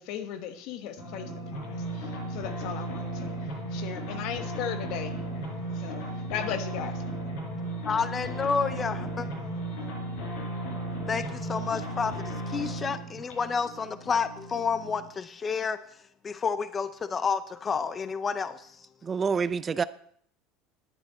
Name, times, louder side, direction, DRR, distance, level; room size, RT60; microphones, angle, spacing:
voice 1, 0.0-3.3 3.7-5.2 5.7-6.0 6.3-7.0, left 9 dB, 65° left, 1.1 m, -37 dB
sound 1, 1.0-15.1, right 1 dB, 80° left, 5.7 m, -35 dB
voice 2, 7.9-9.3 11.1-15.8 16.2-18.7, left 5 dB, 25° left, 0.5 m, -30 dB
voice 3, 19.0-19.8, right 5 dB, 25° right, 0.4 m, -27 dB
10.0 x 9.7 x 4.2 m
supercardioid pair, 105°, 0 cm